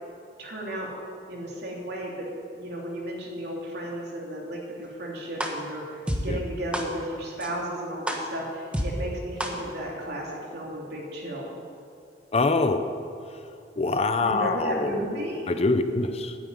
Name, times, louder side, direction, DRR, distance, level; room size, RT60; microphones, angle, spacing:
voice 1, 0.4-0.9 1.3-2.3 2.5-11.5 14.2-15.4, right 1 dB, 65° right, -2 dB, 3.0 m, -34 dB
sound 1, 5.4-5.5 6.1-6.2 6.7-6.8 7.4-7.5 8.1-8.2 8.7-8.8 9.4-9.5, equal, 5° right, 1.3 m, -27 dB
voice 2, 12.3-12.8 13.8-15.0 15.5-16.4, left 3 dB, 35° left, 8 dB, 0.6 m, -24 dB
9.4 x 9.1 x 9.5 m, 2.5 s
head